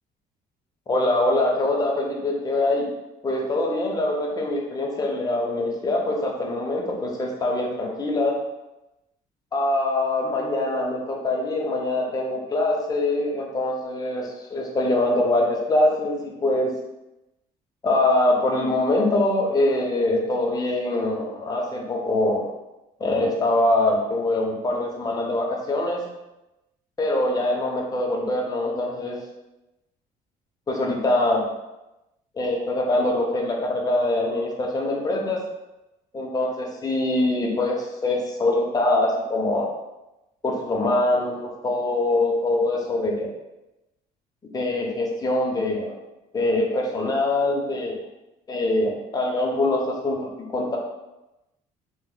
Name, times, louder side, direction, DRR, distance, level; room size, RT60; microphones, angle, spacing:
voice 1, 0.9-2.9 3.2-8.4 9.5-16.7 17.8-22.4 23.0-26.0 27.0-29.2 30.7-31.5 32.3-35.4 36.1-39.7 40.4-43.3 44.5-46.0 46.3-48.0 48.5-50.8, left 2 dB, 20° left, -1 dB, 0.7 m, -23 dB
2.8 x 2.0 x 3.9 m, 0.97 s
cardioid pair, 110°, 17 cm